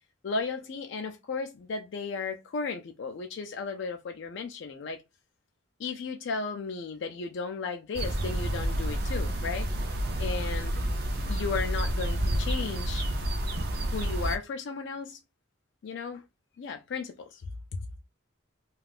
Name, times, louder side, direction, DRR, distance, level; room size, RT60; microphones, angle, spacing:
voice 1, 0.2-5.0 5.8-9.7 10.2-10.7 11.3-13.1 13.9-15.2 15.8-16.2 16.6-17.4 17.7-17.8, left 4 dB, 60° left, 0.3 m, -35 dB
sound 1, 7.9-14.4, right 1 dB, 50° right, 0.5 m, -29 dB
2.4 x 2.3 x 3.3 m
head